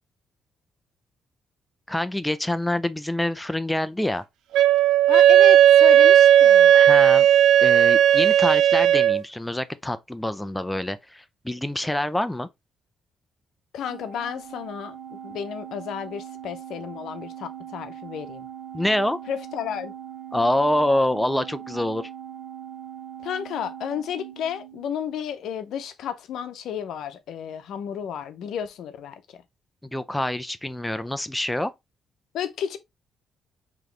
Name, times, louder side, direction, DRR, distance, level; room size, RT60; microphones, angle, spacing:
voice 1, 1.9-4.2 6.7-7.3 7.6-12.5 18.7-19.2 20.3-22.1 29.9-31.7, left 1 dB, 5° left, 0.4 m, -26 dB
Wind instrument woodwind instrument, 4.5-9.2, right 10 dB, 85° right, 0.4 m, -15 dB
voice 2, 5.1-6.7 13.7-18.5 19.3-19.9 23.2-29.4 32.3-32.8, left 8 dB, 75° left, 0.7 m, -32 dB
Organ, 13.9-25.1, right 9 dB, 55° right, 0.7 m, -40 dB
4.9 x 3.0 x 3.1 m
cardioid pair, 90°, 0 cm